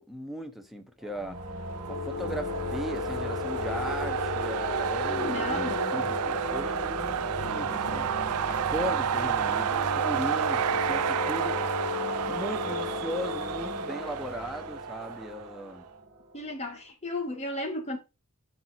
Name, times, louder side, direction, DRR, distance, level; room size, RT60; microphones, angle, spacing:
voice 1, 0.0-1.4 1.9-8.1 8.4-11.6 12.3-15.8, equal, ahead, 0.9 m, -37 dB
sound 1, 1.0-16.6, right 1 dB, 40° right, 1.6 m, -36 dB
sound 2, 1.7-15.5, right 9 dB, 80° right, 0.4 m, -31 dB
sound 3, 1.9-13.4, left 7 dB, 80° left, 1.0 m, -37 dB
voice 2, 5.0-5.9 16.3-18.0, left 2 dB, 30° left, 1.7 m, -34 dB
6.1 x 5.4 x 4.1 m
head